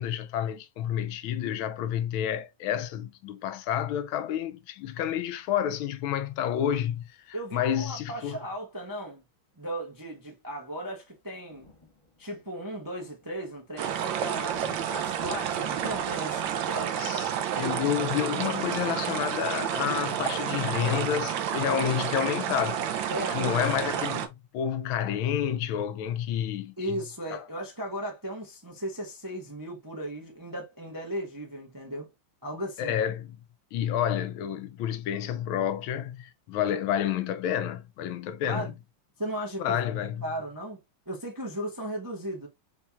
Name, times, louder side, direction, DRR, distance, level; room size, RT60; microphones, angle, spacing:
voice 1, 0.0-8.4 17.0-17.3 17.6-27.0 27.3-27.4 32.8-33.4 33.7-38.7 39.6-40.2, left 10 dB, 85° left, 1.4 m, -30 dB
sound 1, 6.3-7.9 9.2-9.3 9.5-9.7 10.0-22.1, left 2 dB, 20° left, 0.9 m, -56 dB
voice 2, 7.3-9.2 9.6-11.7 12.2-17.0 23.1-23.8 26.8-32.1 32.4-33.0 38.4-38.7 39.2-39.8 40.2-40.8 41.1-42.5, equal, 20° right, 0.5 m, -36 dB
sound 2, 13.8-24.3, right 9 dB, 75° right, 1.3 m, -30 dB
4.4 x 4.2 x 2.2 m
omnidirectional pair, 2.2 m